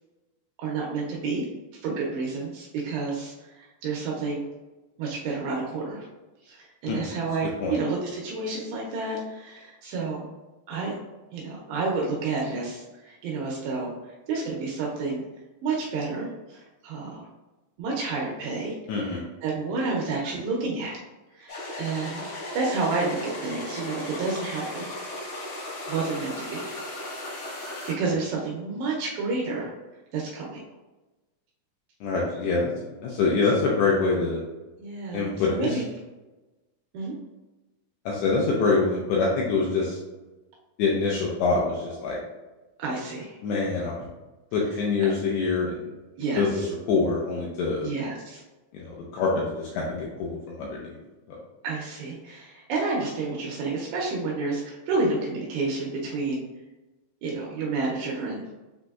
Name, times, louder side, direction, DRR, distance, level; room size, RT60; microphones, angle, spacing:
voice 1, 0.6-1.5 1.8-4.4 5.0-6.1 6.4-10.3 10.7-11.0 11.3-15.2 15.6-17.3 17.8-21.0 21.4-22.2 22.5-24.9 25.9-26.7 28.0-29.7 30.1-30.6 34.8-35.8 36.9-37.1 42.8-43.4 45.0-45.1 46.2-46.7 47.8-48.4 51.6-56.4 57.2-58.4, right 3 dB, 80° right, -3 dB, 2.5 m, -30 dB
voice 2, 18.9-19.2 32.0-32.7 33.0-34.4 35.1-35.8 38.1-40.0 40.8-42.2 43.4-43.9 44.5-45.9 46.4-47.9 48.7-51.0, left 4 dB, 85° left, -4 dB, 2.4 m, -25 dB
sound 1, 21.5-27.9, left 1 dB, 60° left, 1.6 m, -36 dB
7.5 x 2.6 x 2.3 m, 1.1 s
omnidirectional pair, 5.3 m